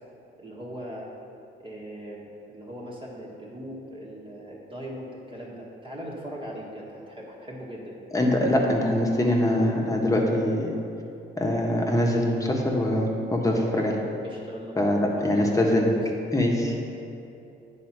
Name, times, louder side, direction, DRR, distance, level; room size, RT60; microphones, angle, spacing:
voice 1, 0.4-1.1 1.6-8.4 8.6-8.7 14.2-15.8, equal, 25° right, -5 dB, 1.5 m, -40 dB
voice 2, 8.1-10.7 11.4-14.0 14.8-15.9 16.3-16.7, left 1 dB, 15° left, -1 dB, 1.3 m, -23 dB
9.1 x 4.2 x 6.0 m, 2.7 s
cardioid pair, 90°, 20 cm